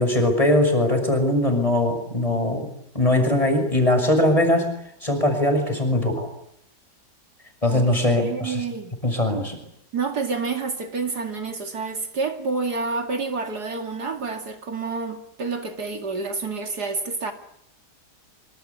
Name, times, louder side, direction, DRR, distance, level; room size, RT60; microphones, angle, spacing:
voice 1, 0.0-2.7 2.9-4.7 5.0-6.3 7.6-8.6 9.0-9.6, left 1 dB, 20° left, 6 dB, 6.4 m, -21 dB
voice 2, 8.2-8.9 9.9-17.3, right 4 dB, 70° right, 5 dB, 2.9 m, -28 dB
26.0 x 25.5 x 8.5 m, 0.73 s
omnidirectional pair, 1.8 m